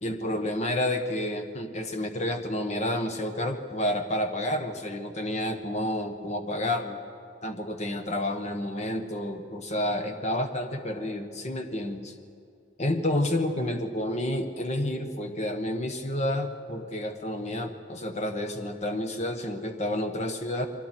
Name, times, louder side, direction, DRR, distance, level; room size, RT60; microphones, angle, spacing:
voice 1, 0.0-7.0 7.4-12.1 12.8-20.7, left 1 dB, 40° left, 6 dB, 1.4 m, -30 dB
29.0 x 22.5 x 4.6 m, 2.3 s
head